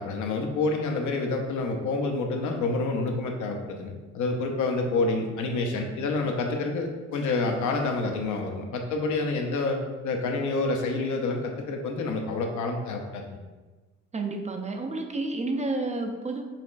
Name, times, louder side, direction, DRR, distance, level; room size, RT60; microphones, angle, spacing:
voice 1, 0.0-9.8 10.0-13.4, left 3 dB, 75° left, 2 dB, 0.7 m, -28 dB
voice 2, 14.1-16.4, right 2 dB, 25° right, 4 dB, 0.5 m, -30 dB
5.6 x 3.0 x 2.5 m, 1.2 s
cardioid pair, 90°, 30 cm